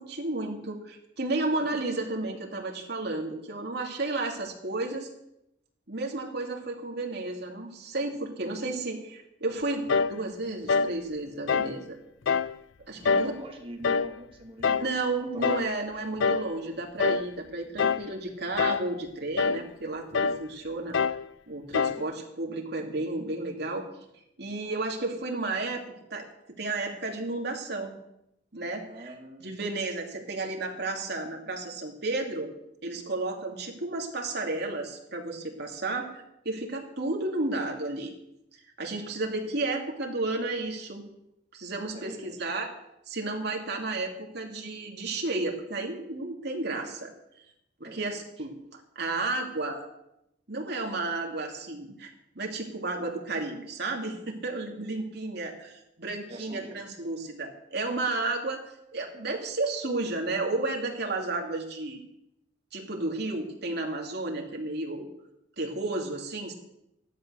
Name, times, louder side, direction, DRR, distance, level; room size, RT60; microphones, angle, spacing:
voice 1, 0.0-5.1 5.9-12.0 12.9-13.3 14.8-21.0 21.5-23.9 24.4-25.8 26.1-26.3 26.6-27.9 28.5-29.1 29.4-32.5 32.8-38.1 38.8-41.0 41.5-42.7 43.1-47.1 47.8-49.8 50.5-58.6 58.9-62.0 62.7-65.1 65.6-66.5, right 2 dB, 55° right, 2 dB, 2.6 m, -32 dB
sound 1, 9.9-10.2 10.7-11.0 11.5-11.8 12.3-12.5 13.0-13.4 13.8-14.1 14.6-14.9 15.4-15.7 16.2-16.5 17.0-17.3 17.8-18.1 18.6-18.9 19.4-19.6 20.1-20.4 20.9-21.2 21.7-22.0, left 5 dB, 75° left, 0.5 m, -25 dB
voice 2, 13.0-16.0 22.0-22.1 24.6-25.0 28.9-29.5 39.1-39.4 41.9-42.5 47.8-48.4 56.3-56.8, right 1 dB, 30° right, 1 dB, 2.5 m, -44 dB
14.0 x 12.0 x 6.4 m, 0.83 s
head